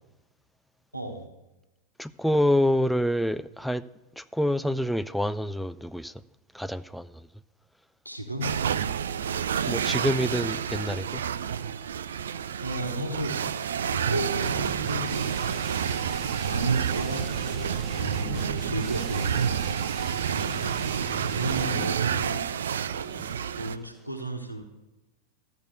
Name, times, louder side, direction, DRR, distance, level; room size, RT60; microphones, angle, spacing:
voice 1, 0.9-1.3 8.0-8.6 12.6-13.4 13.9-15.7 16.4-19.9 21.3-22.6 23.6-24.6, right 1 dB, 90° right, 1.1 m, -34 dB
voice 2, 2.0-3.8 4.2-6.1 6.5-7.1 9.7-11.2 20.3-20.9 23.1-23.3, equal, ahead, 0.3 m, -27 dB
sound 1, 8.4-23.8, right 8 dB, 65° right, 0.4 m, -29 dB
sound 2, 14.4-22.0, right 3 dB, 20° right, 0.8 m, -40 dB
13.0 x 5.2 x 8.0 m
figure-of-eight pair, 90°, 0 cm